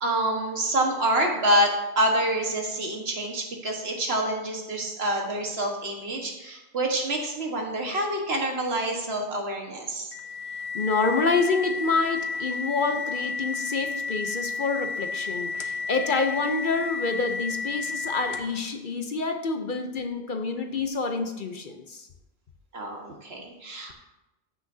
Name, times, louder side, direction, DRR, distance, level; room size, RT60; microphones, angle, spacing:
voice 1, 0.0-10.1 22.7-23.9, right 1 dB, 65° right, 1 dB, 1.7 m, -27 dB
sound 1, 10.1-18.6, left 4 dB, 75° left, 1.0 m, -32 dB
voice 2, 10.7-22.1, left 4 dB, 50° left, 5 dB, 0.8 m, -27 dB
14.0 x 6.3 x 2.7 m, 0.97 s
omnidirectional pair, 1.1 m